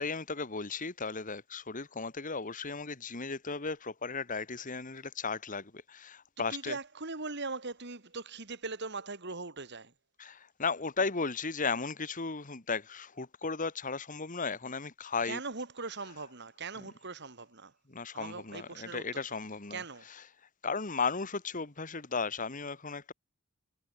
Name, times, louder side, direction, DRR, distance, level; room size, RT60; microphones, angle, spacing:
voice 1, 0.0-6.8 10.2-15.4 17.9-19.8 20.6-23.1, left 4 dB, 40° left, 1.6 m, -35 dB
voice 2, 6.5-9.9 15.2-17.7 18.1-19.2 19.7-20.1, right 3 dB, 55° right, 3.3 m, -40 dB
head